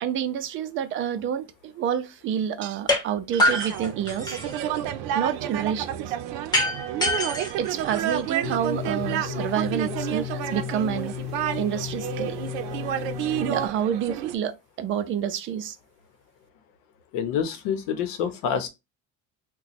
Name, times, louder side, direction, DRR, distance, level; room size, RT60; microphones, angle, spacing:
voice 1, 0.0-4.4 5.1-6.2 7.0-7.1 7.6-11.1 11.6-12.4 13.3-15.8, right 9 dB, 40° right, 0.4 m, -28 dB
sound 1, 2.9-3.0 3.4-4.6 6.5-8.5, left 1 dB, 15° left, 0.8 m, -25 dB
sound 2, 3.4-14.4, right 11 dB, 90° right, 0.6 m, -30 dB
sound 3, 8.4-13.7, left 13 dB, 60° left, 0.5 m, -34 dB
voice 2, 17.1-18.7, left 7 dB, 85° left, 0.8 m, -27 dB
3.0 x 2.2 x 4.1 m
cardioid pair, 160°, 32 cm